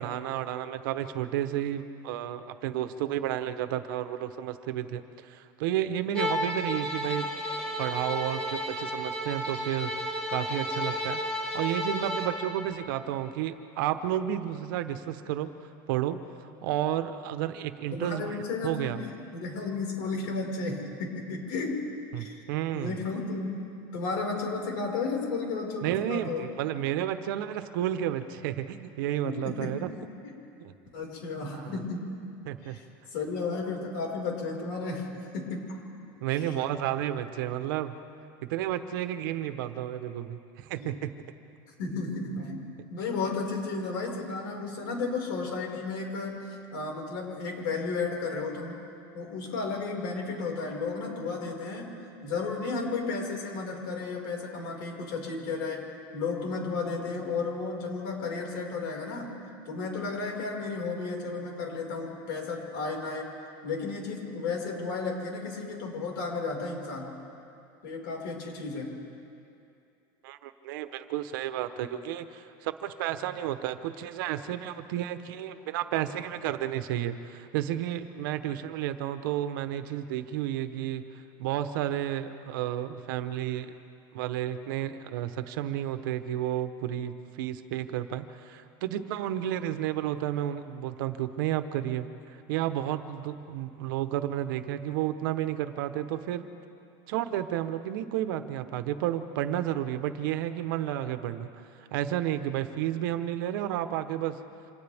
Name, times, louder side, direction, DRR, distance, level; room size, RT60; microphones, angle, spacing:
voice 1, 0.0-7.3 7.8-9.9 10.3-15.5 15.9-16.2 16.6-18.4 18.6-19.0 22.1-23.0 25.8-29.9 30.6-30.7 31.5-31.7 32.5-32.8 36.2-37.9 38.5-41.1 70.2-81.0 81.4-83.7 84.1-92.1 92.5-96.5 97.1-101.5 101.9-104.4, right 12 dB, 70° right, 9 dB, 1.1 m, -31 dB
Bowed string instrument, 6.1-12.4, equal, 10° left, 5.3 m, -32 dB
voice 2, 17.9-21.8 22.2-22.5 22.7-23.6 23.9-26.4 29.2-30.4 30.9-32.1 32.6-32.9 33.1-35.1 35.3-35.8 36.3-36.5 40.8-40.9 41.8-48.8 49.1-52.0 52.2-59.3 59.7-63.3 63.6-67.1 67.8-69.0 73.3-73.4, left 4 dB, 65° left, 0 dB, 5.3 m, -33 dB
29.0 x 26.5 x 3.6 m, 2.6 s
cardioid pair, 175°, 11 cm